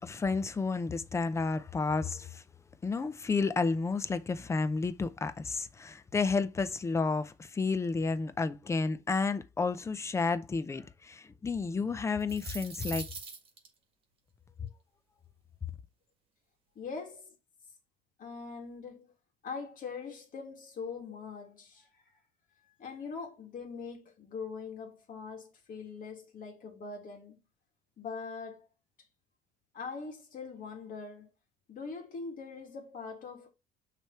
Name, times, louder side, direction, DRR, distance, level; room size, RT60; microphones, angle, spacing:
voice 1, 0.0-2.4 2.8-13.1 14.6-14.7, left 4 dB, 15° left, 0.5 m, -31 dB
sound 1, 12.1-13.7, right 5 dB, 30° right, 1.8 m, -41 dB
voice 2, 16.8-17.3 18.2-19.1 19.4-21.9 22.8-27.4 28.0-28.7 29.7-31.3 31.7-33.5, left 5 dB, 45° left, 2.0 m, -42 dB
6.3 x 3.4 x 4.4 m
cardioid pair, 140°, 19 cm